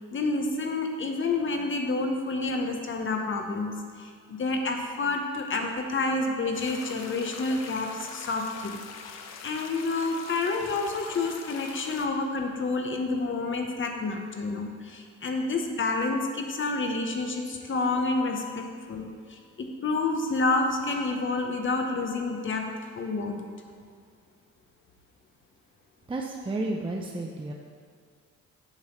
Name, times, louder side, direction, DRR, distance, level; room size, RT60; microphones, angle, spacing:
voice 1, 0.1-23.5, left 3 dB, 40° left, 3 dB, 1.0 m, -29 dB
sound 1, 6.5-12.1, left 6 dB, 60° left, 0.6 m, -43 dB
voice 2, 26.1-27.5, right 2 dB, 15° right, 0 dB, 0.6 m, -32 dB
7.3 x 4.0 x 6.4 m, 2.1 s
cardioid pair, 90°, 30 cm